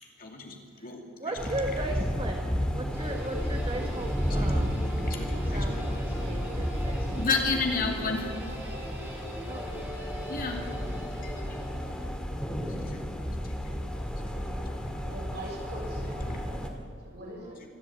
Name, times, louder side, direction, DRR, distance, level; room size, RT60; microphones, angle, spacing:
voice 1, 0.2-0.6 0.8-1.3 4.3-4.6 5.1-5.8 7.1-8.3 10.3-10.8 11.2-12.2 12.7-13.1 13.4-13.7 14.2-15.2 16.3-16.4, left 4 dB, 45° left, 2 dB, 2.8 m, -33 dB
voice 2, 1.2-2.4 2.7-4.8 5.4-7.2 9.5-9.9 17.2-17.6, right 2 dB, 30° right, 2 dB, 1.5 m, -37 dB
sound 1, 1.4-16.7, equal, 5° left, 2.2 m, -32 dB
Guitar, 2.9-12.3, equal, 10° right, 5.8 m, -42 dB
voice 3, 14.9-16.3 16.8-17.7, right 1 dB, 55° right, -2 dB, 6.7 m, -42 dB
25.0 x 12.5 x 8.6 m, 2.1 s
head